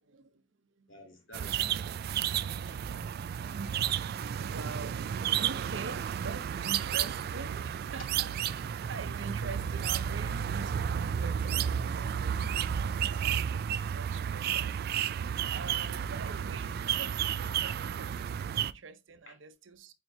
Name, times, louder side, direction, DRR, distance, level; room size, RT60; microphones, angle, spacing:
voice 1, 0.0-0.9 3.5-4.0 4.4-15.2 15.5-19.9, right 4 dB, 75° right, 0.7 m, -46 dB
voice 2, 0.9-2.1 2.4-3.1 19.3-19.4, equal, 85° left, 2.6 m, -54 dB
sound 1, 1.3-18.7, right 9 dB, 55° right, 0.3 m, -32 dB
9.0 x 4.4 x 2.7 m
head